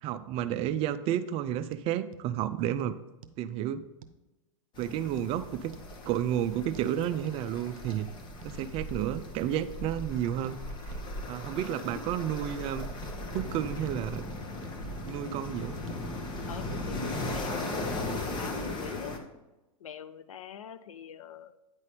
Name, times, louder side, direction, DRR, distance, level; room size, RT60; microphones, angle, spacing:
voice 1, 0.0-3.0 3.4-3.8 4.8-5.7 6.1-8.1 8.4-11.0 11.3-12.9 13.3-14.3 15.1-15.8, right 11 dB, 35° right, 13 dB, 0.4 m, -31 dB
sound 1, 1.7-1.9 2.1-2.3 2.6-2.8 3.2-3.4 4.0-4.2 4.8-5.3 5.7-5.9 6.7-6.9 7.3-7.4 7.9-8.1 8.4-8.6 8.9-9.1 9.4-9.6 10.0-10.1 10.4-10.6 10.9-11.0 11.4-11.6 11.9-12.0 12.5-12.6 13.0-13.2 13.4-13.6 13.9-14.0 14.3-14.8 15.1-15.2 15.6-16.0 16.7-16.8 17.1-17.3, right 7 dB, 75° right, 0.6 m, -49 dB
sound 2, 4.7-19.2, left 1 dB, 25° left, 1.1 m, -37 dB
voice 2, 16.5-19.2 19.8-21.5, left 9 dB, 75° left, 12 dB, 0.6 m, -43 dB
9.0 x 4.1 x 5.0 m, 1.1 s
hypercardioid pair, 105°, 18 cm